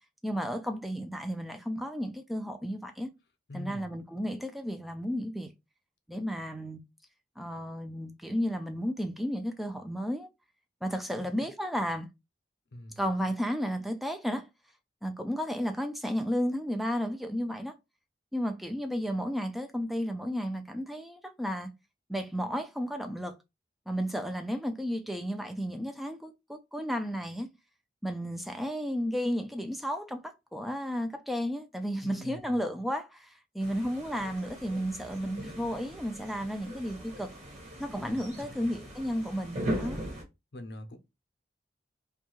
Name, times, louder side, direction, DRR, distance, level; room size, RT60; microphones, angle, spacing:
voice 1, 0.2-3.1 3.5-5.5 6.1-6.8 7.4-10.3 10.8-12.1 13.0-14.5 15.0-17.7 18.3-21.7 22.1-23.3 23.9-27.5 28.0-37.3 37.8-40.0, equal, ahead, 0.3 m, -33 dB
voice 2, 3.5-3.9 11.1-11.5 12.7-13.0 31.8-32.6 38.0-38.8 40.5-41.0, left 1 dB, 65° left, 0.6 m, -45 dB
sound 1, 33.6-40.2, equal, 40° right, 1.2 m, -39 dB
2.6 x 2.3 x 2.9 m
head